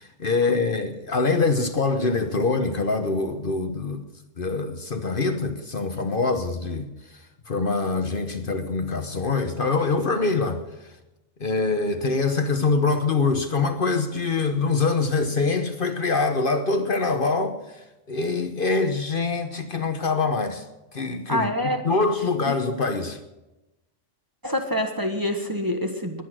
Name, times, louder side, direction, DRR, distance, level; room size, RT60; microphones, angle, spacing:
voice 1, 0.0-4.0 4.4-6.9 7.5-10.6 11.4-17.6 18.1-20.6 20.9-21.5 21.8-23.2, left 3 dB, 50° left, 1.1 m, -24 dB
voice 2, 21.3-21.8 22.5-22.6 24.4-26.2, left 1 dB, 20° right, 1.2 m, -26 dB
21.0 x 8.4 x 6.2 m
omnidirectional pair, 1.3 m